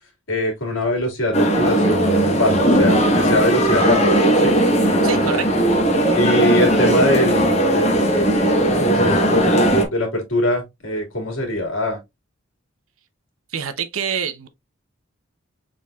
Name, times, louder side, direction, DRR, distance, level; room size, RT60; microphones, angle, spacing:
voice 1, 0.3-4.5 6.1-12.0, left 1 dB, 70° left, 2.3 m, -23 dB
sound 1, 1.3-9.9, right 1 dB, 30° left, 1.1 m, -17 dB
voice 2, 5.0-5.6 13.5-14.5, right 7 dB, 80° right, 0.8 m, -26 dB
5.3 x 4.2 x 2.3 m
head